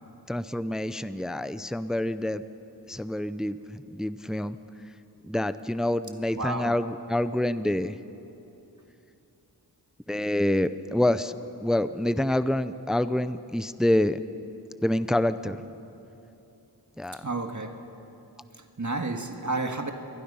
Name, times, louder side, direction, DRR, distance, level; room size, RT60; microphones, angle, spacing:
voice 1, 0.3-2.4 2.9-4.6 5.2-7.9 10.1-11.3 11.6-14.2 14.8-15.6 17.0-17.2, left 1 dB, ahead, 13 dB, 0.6 m, -27 dB
voice 2, 6.3-6.7 17.2-17.8 18.8-19.9, right 3 dB, 45° right, 4 dB, 1.8 m, -30 dB
27.5 x 22.5 x 5.6 m, 2.9 s
wide cardioid pair, 65°, 42 cm